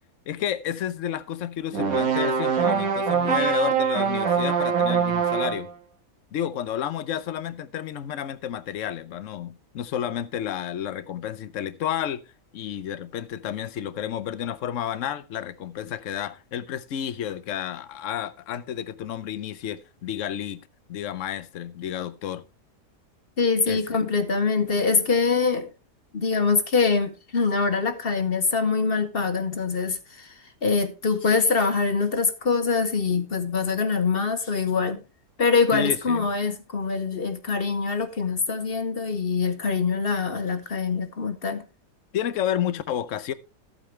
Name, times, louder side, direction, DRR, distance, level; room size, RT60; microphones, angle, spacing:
voice 1, 0.3-5.7 6.3-12.2 12.5-20.6 20.9-22.4 23.7-24.0 35.7-36.3 42.1-43.3, left 10 dB, 55° left, 1.0 m, -31 dB
sound 1, 1.7-5.7, right 7 dB, 60° right, 1.9 m, -23 dB
voice 2, 23.4-25.7 26.1-30.3 30.6-35.0 35.4-41.6, left 4 dB, 40° left, 1.2 m, -24 dB
13.5 x 9.1 x 3.3 m
omnidirectional pair, 1.8 m